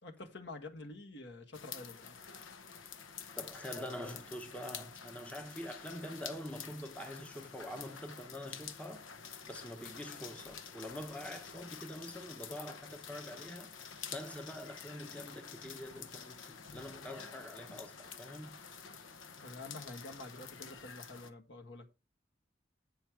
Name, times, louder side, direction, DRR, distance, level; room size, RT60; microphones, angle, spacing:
voice 1, 0.0-2.2 19.4-21.9, left 2 dB, 60° left, 1.5 m, -48 dB
sound 1, 1.5-21.3, left 7 dB, 85° left, 0.9 m, -49 dB
voice 2, 3.3-9.1 9.4-18.6, equal, 5° left, 0.8 m, -45 dB
8.9 x 5.6 x 4.6 m
head